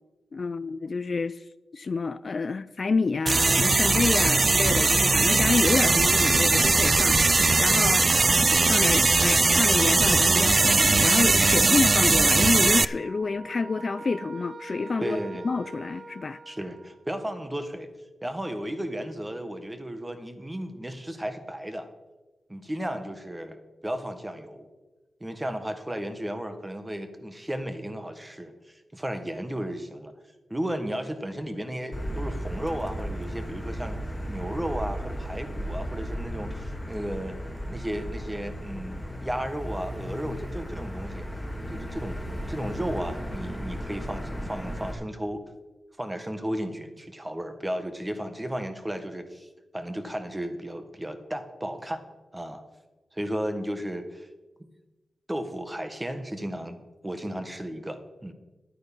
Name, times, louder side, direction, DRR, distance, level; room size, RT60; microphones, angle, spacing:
voice 1, 0.3-1.4 1.7-15.2 15.4-16.4, left 4 dB, 45° left, 0.4 m, -28 dB
sound 1, 3.3-12.9, right 3 dB, 35° right, 0.3 m, -20 dB
voice 2, 11.4-11.8 15.0-15.5 16.5-17.9 18.2-21.9 22.5-24.7 25.2-30.1 30.5-37.4 37.7-41.3 41.7-45.4 46.0-52.0 52.3-52.6 53.1-54.3 55.3-56.8 57.0-58.3, right 1 dB, 15° right, 1.4 m, -34 dB
sound 2, 12.8-17.2, right 3 dB, 55° right, 1.4 m, -43 dB
Motor vehicle (road), 31.9-44.9, equal, 5° left, 1.9 m, -35 dB
11.5 x 9.1 x 5.4 m
cardioid pair, 80°, 0 cm